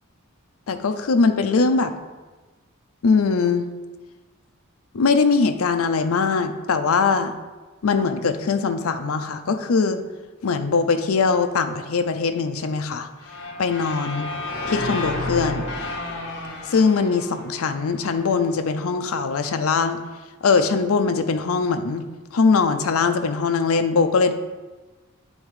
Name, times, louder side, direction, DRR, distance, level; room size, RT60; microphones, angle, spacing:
voice 1, 0.7-1.9 3.0-3.7 4.9-7.3 7.8-10.0 10.4-13.1 13.6-14.3 14.7-15.7 16.7-20.0 20.4-22.0 22.3-24.3, left 4 dB, 75° left, 8 dB, 0.5 m, -21 dB
sound 1, 13.2-18.3, left 2 dB, 55° left, 0.9 m, -31 dB
8.3 x 3.5 x 4.8 m, 1.2 s
head